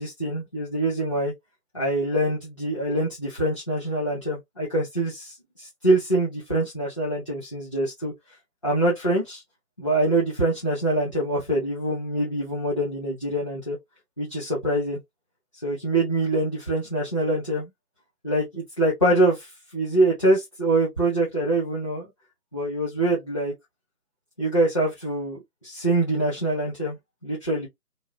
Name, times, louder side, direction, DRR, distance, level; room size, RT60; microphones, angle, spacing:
voice 1, 0.0-1.3 1.7-8.1 8.6-9.4 9.8-13.8 14.2-15.0 15.6-17.7 18.2-22.1 22.5-23.5 24.4-27.0 27.2-27.7, right 1 dB, 20° left, 0.9 m, -24 dB
2.8 x 2.6 x 2.7 m
figure-of-eight pair, 160°, 46 cm